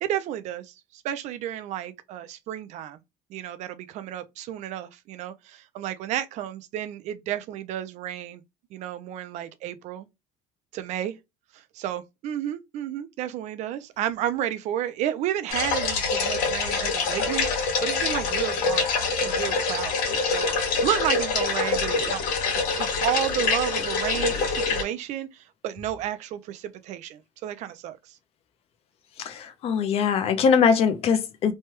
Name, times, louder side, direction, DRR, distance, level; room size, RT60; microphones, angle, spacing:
voice 1, 0.0-3.0 3.3-8.4 8.7-10.1 10.7-11.2 11.5-22.3 22.5-28.2, right 11 dB, 50° right, 0.4 m, -32 dB
sound 1, 15.5-24.8, left 4 dB, 65° left, 1.4 m, -25 dB
voice 2, 29.2-31.5, left 6 dB, 40° left, 0.5 m, -22 dB
3.2 x 2.2 x 2.9 m
cardioid pair, 175°, 16 cm